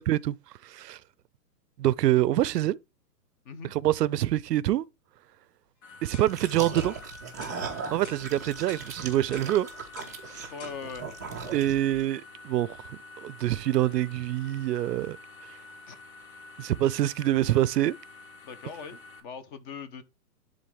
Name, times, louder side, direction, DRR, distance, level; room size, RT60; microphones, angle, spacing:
voice 1, 0.6-1.0 1.8-2.8 3.7-4.8 6.0-6.9 7.9-9.7 10.3-10.5 11.5-15.2 16.6-18.0, right 13 dB, 75° right, 0.6 m, -26 dB
sound 1, 5.8-19.2, left 2 dB, 55° left, 1.7 m, -48 dB
sound 2, 6.1-6.3 6.8-7.0 7.4-7.6 8.0-8.3 8.7-8.9 9.3-9.5 10.0-10.2 10.6-10.8, left 6 dB, 80° left, 1.5 m, -48 dB
sound 3, 6.3-12.0, right 5 dB, 15° right, 0.3 m, -38 dB
voice 2, 10.5-11.1 15.9-16.0 18.4-20.0, left 5 dB, 30° left, 0.8 m, -40 dB
11.0 x 3.8 x 3.2 m
hypercardioid pair, 145°, 49 cm